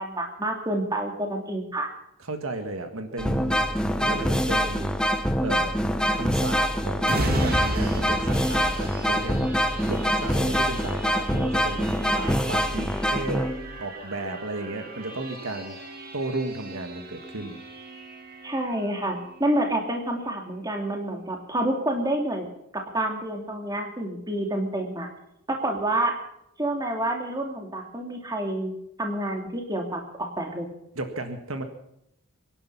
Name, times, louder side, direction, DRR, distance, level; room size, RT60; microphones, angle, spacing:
voice 1, 0.0-1.9 18.4-22.5 22.7-25.1 25.5-26.1 26.6-28.7 29.0-30.7, right 1 dB, 15° right, 2 dB, 2.7 m, -28 dB
voice 2, 2.2-3.7 3.9-5.0 5.4-5.8 6.1-9.6 9.9-13.5 13.8-15.8 16.1-17.6 30.9-31.6, right 2 dB, 75° right, 7 dB, 1.7 m, -34 dB
sound 1, 3.2-13.8, equal, 5° left, 0.9 m, -25 dB
sound 2, 7.0-20.4 20.8-21.0, right 1 dB, 45° right, 2.3 m, -35 dB
24.5 x 11.0 x 5.6 m, 0.78 s
head